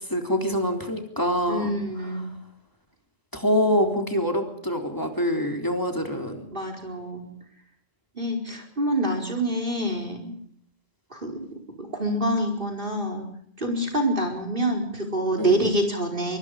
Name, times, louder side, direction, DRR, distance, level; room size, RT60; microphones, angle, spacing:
voice 1, 0.0-1.7 3.3-6.5 15.4-15.6, equal, 15° left, 4 dB, 3.6 m, -25 dB
voice 2, 1.5-2.3 6.5-7.3 8.2-10.3 11.1-11.5 11.8-13.3 13.6-16.4, right 1 dB, 45° right, 3 dB, 5.0 m, -26 dB
24.0 x 23.5 x 5.0 m, 0.66 s
omnidirectional pair, 1.3 m